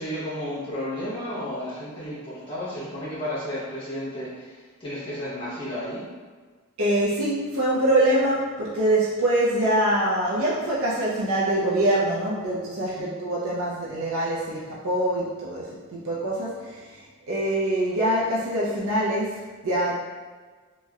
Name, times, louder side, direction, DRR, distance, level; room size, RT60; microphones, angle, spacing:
voice 1, 0.0-6.0 13.0-13.1, equal, 25° left, -10 dB, 0.8 m, -33 dB
voice 2, 6.8-19.9, right 1 dB, 85° right, -6 dB, 0.6 m, -24 dB
3.0 x 3.0 x 2.3 m, 1.5 s
head